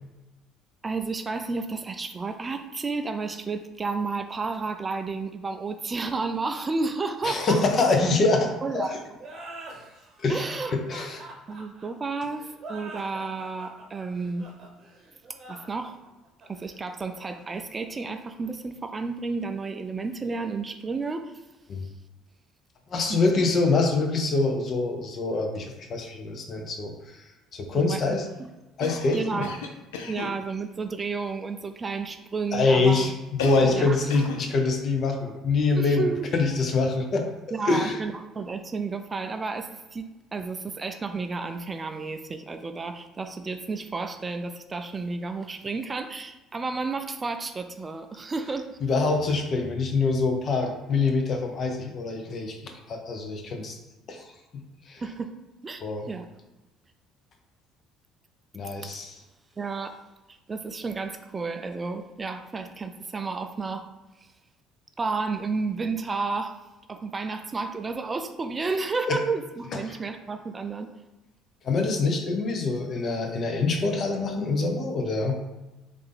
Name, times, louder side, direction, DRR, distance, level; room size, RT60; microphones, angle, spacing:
voice 1, 0.8-7.6 8.6-8.9 10.3-10.7 11.5-14.5 15.5-15.9 16.5-21.3 23.1-23.2 27.7-28.5 29.1-29.5 30.1-33.1 33.7-34.3 35.7-36.2 36.5-36.6 37.5-48.8 55.0-55.3 55.6-56.3 59.6-59.9 60.5-63.9 65.0-66.6 66.9-70.9, right 4 dB, 30° right, 7 dB, 0.3 m, -31 dB
voice 2, 7.2-9.0 10.2-11.2 21.7-21.8 22.9-27.2 27.5-28.2 28.8-29.5 32.5-37.3 37.7-38.0 48.8-53.8 54.1-54.3 54.5-55.0 55.8-56.1 58.5-59.2 69.1-69.2 69.7-70.0 71.6-75.4, left 3 dB, 50° left, 3 dB, 0.6 m, -25 dB
sound 1, 9.2-18.5, right 2 dB, 50° right, 0.8 m, -45 dB
Cough, 28.8-30.4 33.4-33.9 34.1-34.5, left 4 dB, 85° left, 0.3 m, -34 dB
3.3 x 2.5 x 3.3 m, 1.1 s
hypercardioid pair, 65°, 0 cm